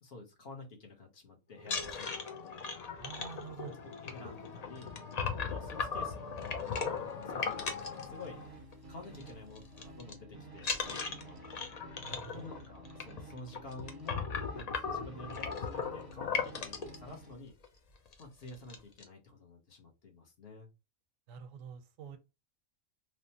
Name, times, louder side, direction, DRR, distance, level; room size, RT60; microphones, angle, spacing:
voice 1, 0.0-2.7 3.6-4.9 5.3-8.4 8.9-11.4 12.3-17.5 18.2-20.7, left 3 dB, 55° left, 1.0 m, -50 dB
sound 1, 1.6-8.7 9.0-9.3 9.6-10.1 10.6-17.0 17.6-17.7 18.1-18.2 18.5-19.0, left 5 dB, 75° left, 0.3 m, -38 dB
voice 2, 3.0-3.8 12.0-12.5 21.3-22.2, right 6 dB, 85° right, 1.0 m, -47 dB
sound 2, 7.8-17.4, right 1 dB, 20° right, 0.6 m, -52 dB
3.2 x 2.1 x 2.7 m
omnidirectional pair, 1.3 m